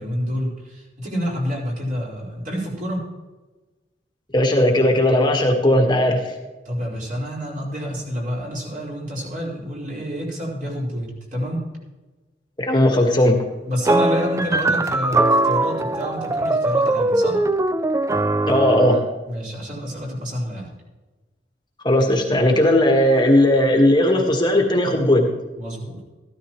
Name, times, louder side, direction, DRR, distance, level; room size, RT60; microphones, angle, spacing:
voice 1, 0.0-3.0 6.6-11.6 13.7-17.4 19.3-20.7 25.6-26.2, equal, 50° right, -3 dB, 4.6 m, -28 dB
voice 2, 4.3-6.2 12.6-13.4 18.5-19.0 21.8-25.3, left 1 dB, 25° left, 2 dB, 1.5 m, -17 dB
sound 1, 13.8-19.1, right 2 dB, 15° right, 0.3 m, -20 dB
14.5 x 13.0 x 3.1 m, 1.2 s
head